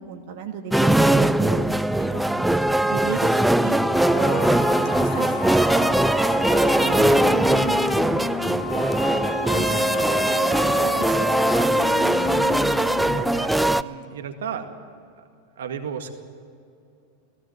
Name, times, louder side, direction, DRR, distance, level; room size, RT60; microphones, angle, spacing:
voice 1, 0.1-1.7 2.0-2.6 2.9-3.8 4.1-7.7 8.0-9.2 9.5-12.0, right 7 dB, 60° right, 4 dB, 1.6 m, -35 dB
sound 1, 0.7-13.8, right 1 dB, 5° right, 0.5 m, -20 dB
sound 2, 3.9-13.2, left 5 dB, 65° left, 2.7 m, -33 dB
voice 2, 13.0-14.7 15.2-15.3 15.6-16.1, right 7 dB, 75° right, 6 dB, 1.9 m, -34 dB
18.0 x 16.5 x 9.4 m, 2.4 s
hypercardioid pair, 95°, 0 cm